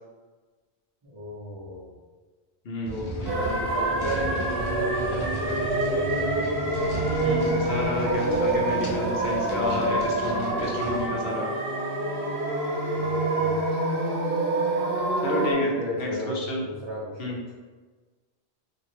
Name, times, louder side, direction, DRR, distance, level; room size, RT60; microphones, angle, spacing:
voice 1, 1.0-2.0 2.9-6.7 13.0-13.6 15.5-16.4 16.6-17.5, left 1 dB, 35° right, -8 dB, 0.5 m, -35 dB
voice 2, 2.6-3.0 7.2-11.5 15.2-16.6 17.2-17.4, left 2 dB, 65° left, -1 dB, 0.8 m, -30 dB
sound 1, 2.8-11.1, right 1 dB, 45° left, 0.4 m, -36 dB
sound 2, 3.3-15.5, right 2 dB, 60° right, 1.1 m, -26 dB
2.8 x 2.5 x 3.0 m, 1.3 s
omnidirectional pair, 1.1 m